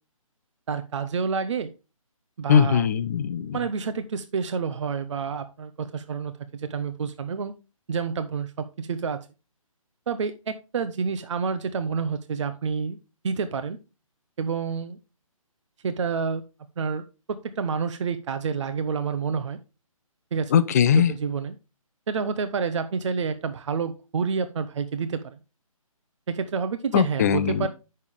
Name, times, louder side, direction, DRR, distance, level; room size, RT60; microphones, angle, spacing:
voice 1, 0.7-1.7 2.4-2.9 3.5-7.5 7.9-9.2 10.1-13.0 13.2-13.8 14.4-15.0 15.8-16.4 16.8-17.0 17.3-19.6 20.3-20.5 20.9-21.5 22.1-25.4 26.3-27.7, right 5 dB, 55° right, 0.8 m, -28 dB
voice 2, 2.5-3.6 20.5-21.1 26.9-27.7, left 8 dB, 30° left, 0.5 m, -20 dB
8.4 x 6.5 x 3.5 m
hypercardioid pair, 155°, 18 cm